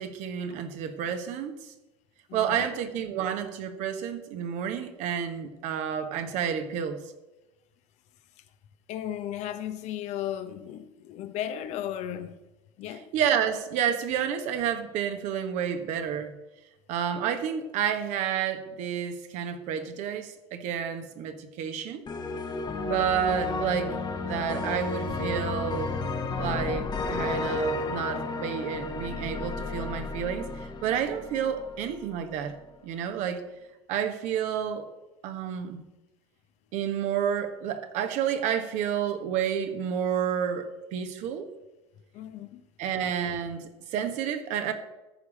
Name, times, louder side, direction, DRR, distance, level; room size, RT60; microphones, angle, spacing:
voice 1, 0.0-1.5 2.3-7.0 13.1-16.4 16.9-22.0 22.8-24.0 24.2-25.9 26.4-30.5 30.8-32.6 32.8-33.4 33.9-34.9 35.2-35.8 36.7-41.5 42.8-44.7, right 8 dB, 55° right, 1.4 m, -30 dB
voice 2, 2.3-2.7 8.9-12.4 12.8-13.1 42.1-42.6, left 11 dB, 50° left, 0.9 m, -35 dB
sound 1, 22.1-32.1, left 3 dB, 30° left, 1.2 m, -32 dB
13.5 x 4.8 x 7.3 m
hypercardioid pair, 80°, 15 cm